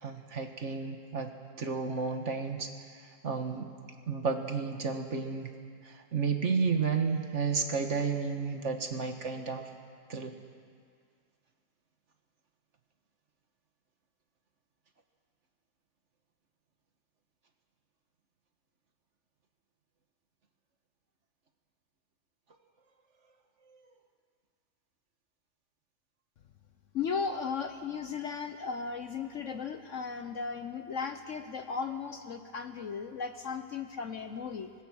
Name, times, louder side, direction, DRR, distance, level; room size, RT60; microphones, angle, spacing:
voice 1, 0.0-1.3 1.6-2.7 3.2-3.7 4.1-5.5 5.8-9.6 10.1-10.3, right 5 dB, 45° right, 5 dB, 1.6 m, -32 dB
voice 2, 26.9-34.7, left 5 dB, 55° left, 8 dB, 1.0 m, -36 dB
25.5 x 21.5 x 6.3 m, 2.1 s
omnidirectional pair, 1.8 m